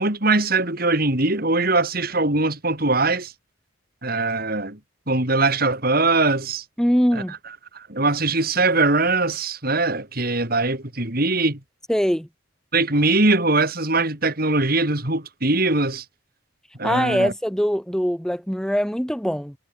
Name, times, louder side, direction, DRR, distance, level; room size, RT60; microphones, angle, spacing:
voice 1, 0.0-3.3 4.0-4.8 5.1-6.6 7.1-7.4 7.7-11.6 12.7-16.0 16.8-17.3, right 2 dB, 50° right, 4.6 m, -21 dB
voice 2, 6.8-7.3 11.9-12.3 16.8-19.5, equal, 5° left, 2.2 m, -22 dB
head